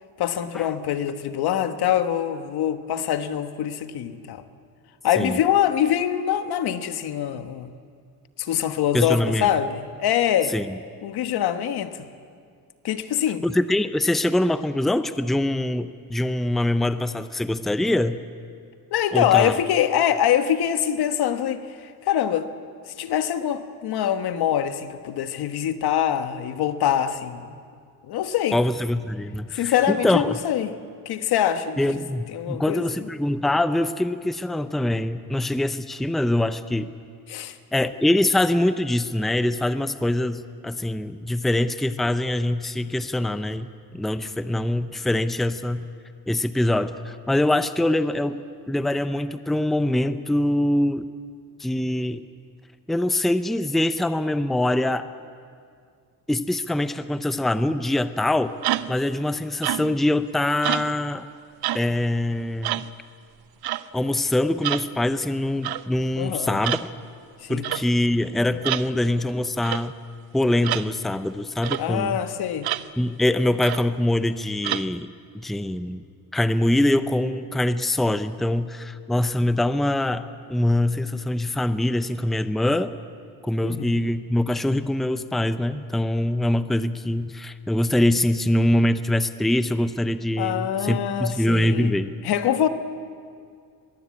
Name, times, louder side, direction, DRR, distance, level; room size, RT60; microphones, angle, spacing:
voice 1, 0.2-4.4 5.0-7.7 8.4-10.5 11.0-12.0 12.8-13.4 18.9-22.5 22.9-27.5 28.1-28.6 29.5-30.7 31.0-31.9 32.3-32.9 37.3-37.5 66.2-66.6 67.4-67.7 71.8-72.7 83.6-84.0 90.4-91.9 92.2-92.7, left 10 dB, 85° left, 9 dB, 1.3 m, -24 dB
voice 2, 8.9-9.5 10.5-10.8 13.4-18.2 19.1-19.5 28.5-30.4 31.8-36.9 37.7-45.9 46.3-48.4 48.7-51.1 51.6-52.2 52.9-55.1 56.3-58.5 58.9-61.3 61.7-62.8 63.9-66.8 67.5-70.0 70.3-72.2 73.0-75.1 75.3-76.0 76.3-83.0 83.4-92.1, left 1 dB, ahead, 11 dB, 0.5 m, -23 dB
sound 1, 58.6-59.0 59.6-60.0 60.6-61.0 61.6-61.9 62.6-62.9 63.6-63.9 64.6-64.9 65.6-65.9 66.6-66.9 67.6-67.9 68.6-68.9 69.6-69.9 70.6-70.9 71.6-71.8 72.6-72.9 73.6-73.9 74.6-74.9, right 14 dB, 80° right, 0.7 m, -27 dB
23.0 x 22.0 x 8.5 m, 2.2 s
cardioid pair, 155°, 37 cm